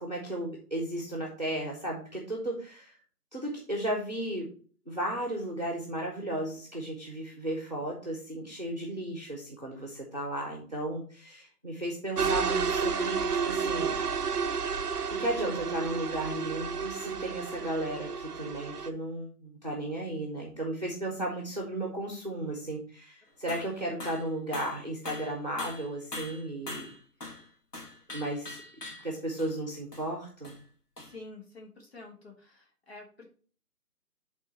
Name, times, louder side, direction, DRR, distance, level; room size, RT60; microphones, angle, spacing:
voice 1, 0.0-2.9 3.3-4.5 4.9-14.0 15.1-26.9 28.1-30.5, right 1 dB, 25° right, 0 dB, 0.9 m, -35 dB
sound 1, 12.2-18.9, right 5 dB, 75° right, 0.8 m, -31 dB
sound 2, 23.5-23.7 24.0-24.3 24.5-27.5 27.7-29.1 29.4-29.5 29.9-30.1 30.4-30.6 31.0-31.1, left 2 dB, 80° left, 2.1 m, -42 dB
voice 2, 31.0-33.3, left 2 dB, 40° left, 0 dB, 1.6 m, -48 dB
7.9 x 3.8 x 4.3 m, 0.41 s
figure-of-eight pair, 180°, 47 cm